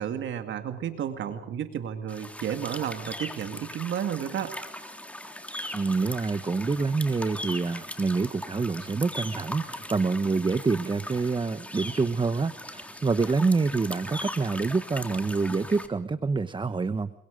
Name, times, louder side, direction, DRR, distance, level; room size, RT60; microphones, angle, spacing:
voice 1, 0.0-4.5, right 9 dB, 70° right, 7 dB, 2.2 m, -32 dB
sound 1, 2.1-15.9, left 1 dB, 5° left, 3.5 m, -39 dB
voice 2, 5.7-17.1, right 4 dB, 25° right, 12 dB, 1.0 m, -27 dB
29.0 x 23.0 x 5.2 m, 0.79 s
cardioid pair, 90°, 20 cm